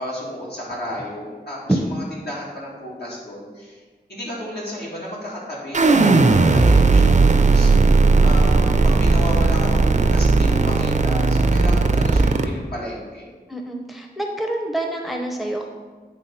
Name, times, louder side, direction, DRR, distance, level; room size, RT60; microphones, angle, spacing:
voice 1, 0.0-3.8 4.1-7.2 7.5-13.3, left 1 dB, 70° left, -6 dB, 2.5 m, -33 dB
sound 1, 5.7-12.4, right 3 dB, 45° right, 0.6 m, -16 dB
voice 2, 13.5-15.7, right 1 dB, ahead, 2 dB, 0.7 m, -26 dB
8.6 x 3.5 x 5.7 m, 1.4 s
wide cardioid pair, 65°, 17 cm